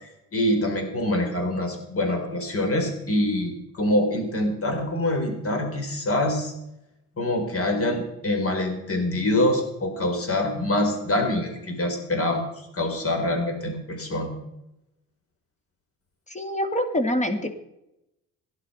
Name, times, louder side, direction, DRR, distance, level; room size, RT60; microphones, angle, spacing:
voice 1, 0.0-6.5 7.2-14.3, left 1 dB, 50° left, 4 dB, 4.5 m, -25 dB
voice 2, 16.3-17.5, equal, 25° left, 7 dB, 2.6 m, -25 dB
16.0 x 11.0 x 5.7 m, 0.86 s
cardioid pair, 90°, 30 cm